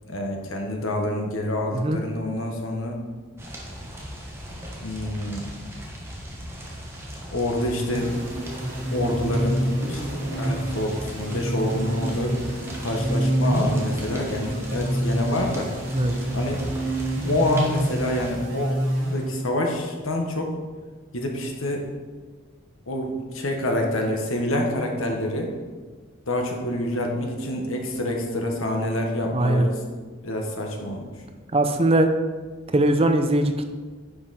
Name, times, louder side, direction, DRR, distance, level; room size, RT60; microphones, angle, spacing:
voice 1, 0.1-3.0 4.8-5.5 7.3-8.1 8.9-10.0 10.4-12.4 12.8-15.7 16.3-16.6 17.2-18.7 19.1-20.5 21.1-21.9 22.9-25.5 26.3-29.8 30.2-31.1, left 1 dB, 80° left, 1 dB, 1.5 m, -27 dB
sound 1, 3.4-18.3, equal, 10° right, 1.3 m, -38 dB
sound 2, 7.9-19.7, right 1 dB, 65° right, 2.6 m, -27 dB
voice 2, 29.3-29.7 31.5-32.1 32.7-33.6, right 1 dB, 30° right, 7 dB, 0.5 m, -20 dB
9.9 x 5.8 x 4.3 m, 1.4 s
head